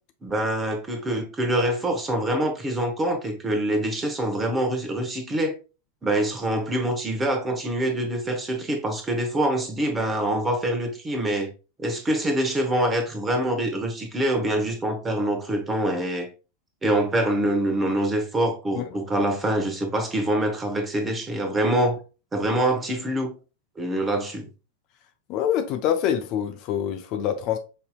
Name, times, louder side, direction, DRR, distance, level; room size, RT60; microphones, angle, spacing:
voice 1, 0.2-5.5 6.0-11.5 11.8-16.3 16.8-22.0 22.3-23.3 23.8-24.5, right 1 dB, 15° right, 0.9 m, -25 dB
voice 2, 25.3-27.6, left 9 dB, 40° left, 0.4 m, -25 dB
5.3 x 2.7 x 2.2 m
figure-of-eight pair, 90°, 0 cm